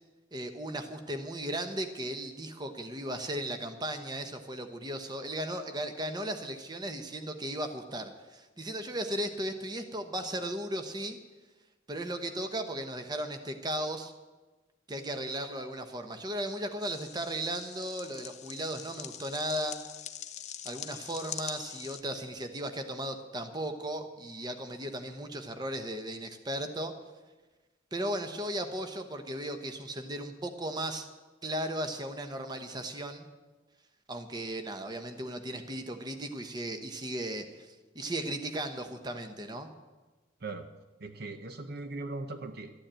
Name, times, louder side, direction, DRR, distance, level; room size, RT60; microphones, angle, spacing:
voice 1, 0.3-11.2 11.9-14.1 14.9-19.8 20.6-26.9 27.9-31.1 31.4-33.3 34.1-39.7, right 1 dB, 20° right, 7 dB, 1.0 m, -36 dB
sound 1, 16.8-22.0, left 10 dB, 35° left, 0.6 m, -44 dB
voice 2, 41.0-42.7, right 2 dB, 50° right, 8 dB, 0.8 m, -39 dB
13.0 x 9.7 x 8.9 m, 1.2 s
head